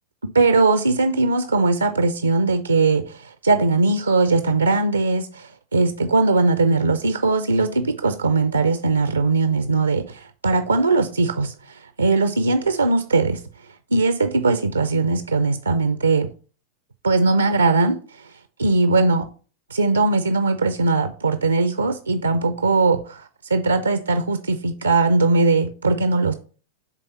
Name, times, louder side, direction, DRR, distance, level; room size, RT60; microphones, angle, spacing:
voice 1, 0.3-13.4 13.9-16.3 17.0-18.3 18.6-19.3 19.7-26.3, right 3 dB, 80° right, 0.4 m, -20 dB
8.2 x 3.5 x 4.0 m
figure-of-eight pair, 90°, 0 cm